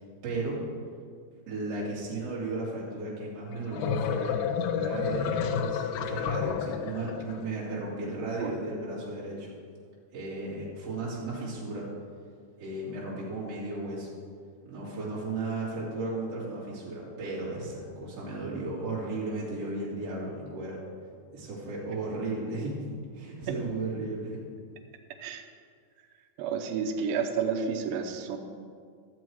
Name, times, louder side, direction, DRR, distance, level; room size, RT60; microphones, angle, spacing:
voice 1, 0.2-0.6 1.5-4.4 4.7-9.5 10.1-11.9 12.6-14.1 14.6-20.8 21.3-22.8 23.1-24.4, right 2 dB, 45° right, -7 dB, 3.2 m, -35 dB
sound 1, 3.5-7.4, left 7 dB, 85° left, 1.8 m, -30 dB
voice 2, 26.4-28.4, right 6 dB, 75° right, 4 dB, 2.4 m, -30 dB
13.0 x 7.4 x 4.7 m, 2.1 s
omnidirectional pair, 4.4 m